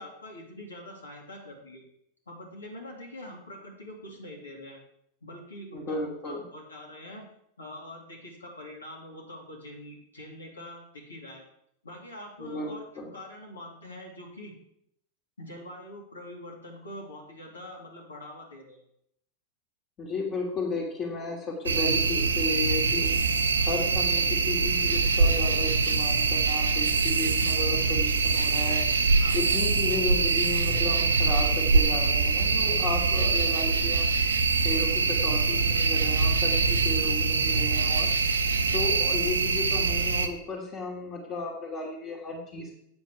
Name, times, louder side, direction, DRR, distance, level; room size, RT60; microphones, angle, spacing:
voice 1, 0.0-1.9 2.3-4.8 5.2-7.3 7.6-11.4 11.8-12.8 13.1-14.5 15.4-18.8 29.2-29.4 37.5-37.7, left 1 dB, 75° left, -2 dB, 2.7 m, -44 dB
voice 2, 5.7-6.4 12.4-13.1 20.0-23.1 23.6-34.1 34.6-38.1 38.7-42.8, left 3 dB, 30° left, -5 dB, 2.3 m, -34 dB
sound 1, 21.7-40.3, right 4 dB, 75° right, 0.7 m, -24 dB
8.8 x 7.4 x 4.8 m, 0.74 s
figure-of-eight pair, 90°, 0 cm